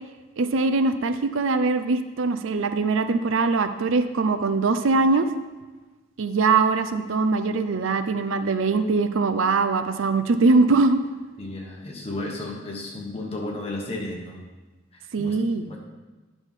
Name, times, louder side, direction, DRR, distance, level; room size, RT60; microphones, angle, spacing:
voice 1, 0.4-5.3 6.2-11.0 15.1-15.8, right 3 dB, 80° right, 10 dB, 0.5 m, -22 dB
voice 2, 11.4-14.4 14.9-15.4 15.7-15.8, left 2 dB, 30° left, -1 dB, 1.3 m, -33 dB
9.7 x 6.2 x 3.6 m, 1.2 s
head